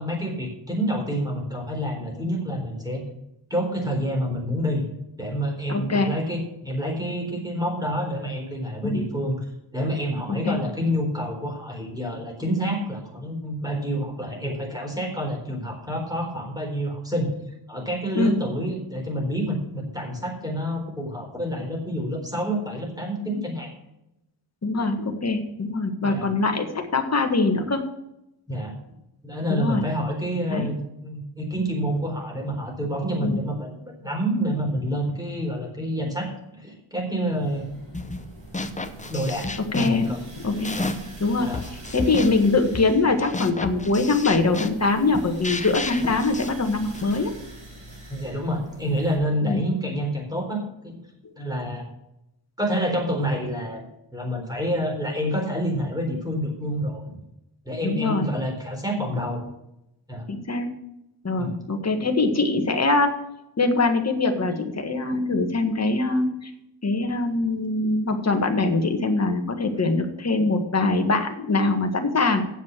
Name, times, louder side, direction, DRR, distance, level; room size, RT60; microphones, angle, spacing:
voice 1, 0.0-3.0 3.5-4.9 5.2-9.5 9.7-17.3 17.7-23.7 26.0-26.3 28.5-28.7 29.2-37.7 39.1-40.2 40.8-40.9 41.4-41.6 48.1-51.0 51.4-51.9 52.6-57.0 57.6-59.5 60.1-60.3 61.4-61.5, equal, 5° right, 0 dB, 3.9 m, -28 dB
voice 2, 5.7-6.1 8.8-9.0 10.4-10.6 18.1-18.4 24.6-27.8 29.5-29.8 30.5-30.7 33.2-33.4 39.7-40.1 40.4-40.8 41.2-41.5 41.9-47.3 49.4-49.6 57.8-58.3 60.3-60.7 61.2-63.1 63.6-66.5 66.8-72.4, left 3 dB, 30° left, 5 dB, 1.6 m, -23 dB
sound 1, 37.2-49.1, right 2 dB, 75° right, 5.1 m, -43 dB
sound 2, 37.9-38.3 38.5-41.2 41.5-47.2, left 2 dB, 15° left, 0.8 m, -32 dB
8.7 x 7.5 x 7.5 m, 0.85 s
wide cardioid pair, 125°, 50 cm